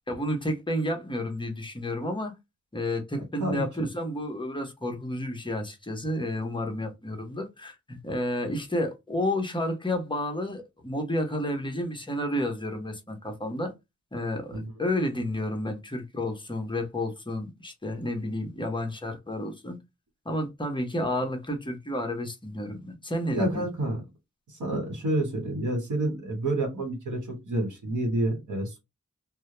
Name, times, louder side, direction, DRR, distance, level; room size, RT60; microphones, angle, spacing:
voice 1, 0.1-2.3 2.7-13.7 14.1-19.8 20.2-23.7, left 1 dB, 15° left, 0.8 m, -31 dB
voice 2, 23.3-24.0 24.6-28.8, right 1 dB, 85° right, 1.1 m, -28 dB
2.2 x 2.1 x 2.9 m
wide cardioid pair, 65°, 29 cm